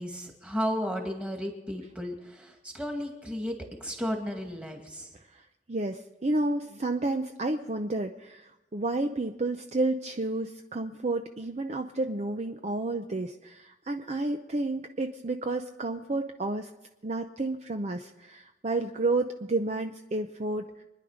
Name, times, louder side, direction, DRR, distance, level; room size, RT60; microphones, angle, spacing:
voice 1, 0.0-3.6 3.8-5.1, equal, 5° right, 2 dB, 2.1 m, -33 dB
voice 2, 5.3-16.7 17.0-20.8, right 2 dB, 40° right, 6 dB, 0.6 m, -31 dB
25.5 x 10.5 x 5.0 m, 0.97 s
head